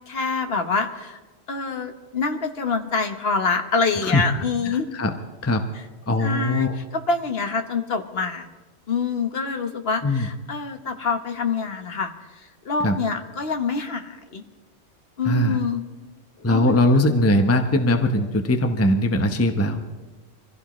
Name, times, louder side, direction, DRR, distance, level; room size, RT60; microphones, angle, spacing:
voice 1, 0.1-1.2 1.5-4.9 5.7-5.8 6.2-8.5 8.9-12.1 12.6-14.4 15.2-15.8 16.4-17.0, left 4 dB, 50° left, 6 dB, 1.4 m, -26 dB
voice 2, 4.0-5.1 5.4-5.6 6.1-6.8 10.0-10.3 12.8-13.0 15.2-15.6 16.4-19.8, left 1 dB, 15° left, 5 dB, 0.8 m, -21 dB
25.0 x 16.0 x 3.1 m, 1.3 s
omnidirectional pair, 1.3 m